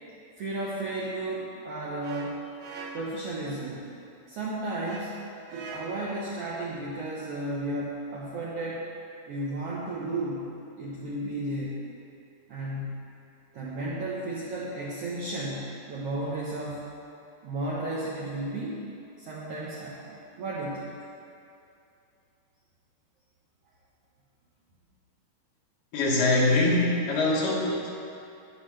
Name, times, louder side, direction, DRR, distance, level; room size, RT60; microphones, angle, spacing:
voice 1, 0.4-2.4 2.9-3.8 4.3-5.2 5.5-8.8 9.3-10.5 10.8-11.9 12.5-13.1 13.5-16.8 17.4-18.8 19.2-20.9, right 2 dB, 70° right, -6 dB, 1.4 m, -33 dB
sound 1, 2.0-3.3 4.8-6.2, right 3 dB, 90° right, 2.6 m, -42 dB
voice 2, 25.9-27.9, left 2 dB, 80° left, -4 dB, 3.0 m, -23 dB
9.9 x 9.5 x 3.3 m, 2.6 s
omnidirectional pair, 3.9 m